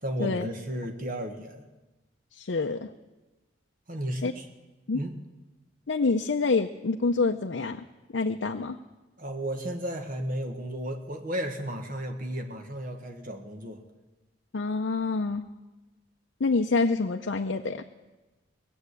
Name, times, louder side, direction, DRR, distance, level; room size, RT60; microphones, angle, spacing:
voice 1, 0.0-1.7 3.9-4.5 4.9-5.1 9.2-13.8, equal, 45° right, 5 dB, 1.5 m, -34 dB
voice 2, 2.3-2.9 4.2-4.3 4.9-5.0 5.9-7.8 8.1-8.8 14.5-15.4 16.4-17.8, left 3 dB, 70° left, 4 dB, 0.6 m, -27 dB
19.0 x 7.8 x 8.3 m, 1.1 s
head